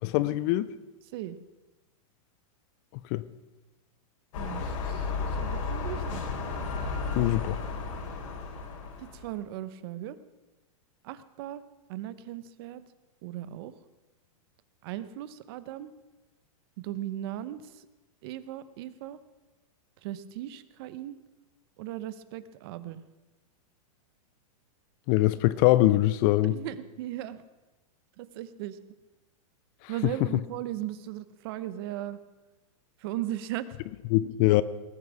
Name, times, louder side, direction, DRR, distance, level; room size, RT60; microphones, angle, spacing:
voice 1, 0.0-0.7 3.1-3.2 7.1-7.6 25.1-26.6 34.1-34.6, left 16 dB, 30° left, 17 dB, 0.4 m, -23 dB
sound 1, 4.3-9.3, left 4 dB, 65° left, 3.2 m, -33 dB
voice 2, 4.4-6.3 9.0-10.2 11.0-11.6 11.9-12.8 13.2-13.7 14.8-15.9 16.8-17.8 18.2-19.2 20.0-21.2 21.8-23.0 26.4-27.4 28.2-28.8 29.9-32.2 33.0-33.8, right 13 dB, 45° right, 15 dB, 0.8 m, -37 dB
19.0 x 9.4 x 6.2 m, 1.1 s
supercardioid pair, 155°, 18 cm